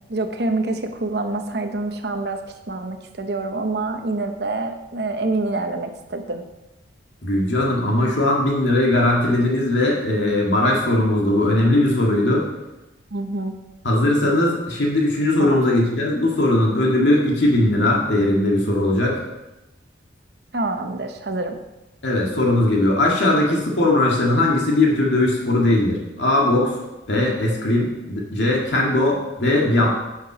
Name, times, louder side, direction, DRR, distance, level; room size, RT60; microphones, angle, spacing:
voice 1, 0.1-6.4 13.1-13.6 15.4-15.6 20.5-21.6, right 2 dB, 65° right, 6 dB, 0.8 m, -26 dB
voice 2, 7.2-12.4 13.8-19.2 22.0-26.7 27.1-29.9, left 1 dB, 85° left, -2 dB, 1.8 m, -19 dB
8.7 x 5.9 x 4.9 m, 1.0 s
head